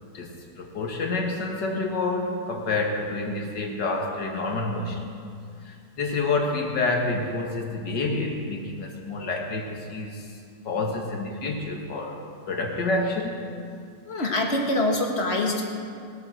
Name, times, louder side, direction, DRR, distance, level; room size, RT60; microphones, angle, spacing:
voice 1, 0.1-5.1 5.6-10.3 10.6-13.4, left 3 dB, 85° left, 1 dB, 2.4 m, -28 dB
voice 2, 14.1-15.6, left 1 dB, 40° left, 1 dB, 2.0 m, -24 dB
21.0 x 8.5 x 6.4 m, 2.3 s
omnidirectional pair, 1.9 m